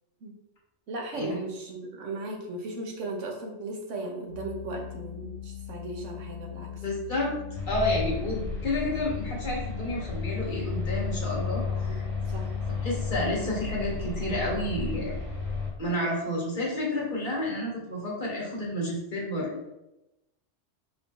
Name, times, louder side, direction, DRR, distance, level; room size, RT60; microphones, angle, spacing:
voice 1, 0.9-6.8 11.9-12.0 12.3-12.6, right 2 dB, 85° right, 2 dB, 1.2 m, -37 dB
sound 1, 4.3-15.2, left 11 dB, 65° left, 1.2 m, -41 dB
voice 2, 6.8-7.3 7.7-12.0 12.8-15.1 15.8-19.6, left 1 dB, 45° left, -4 dB, 1.4 m, -30 dB
sound 2, 7.5-15.7, left 4 dB, 25° right, 1.4 m, -33 dB
5.3 x 2.7 x 3.7 m, 0.92 s
omnidirectional pair, 1.2 m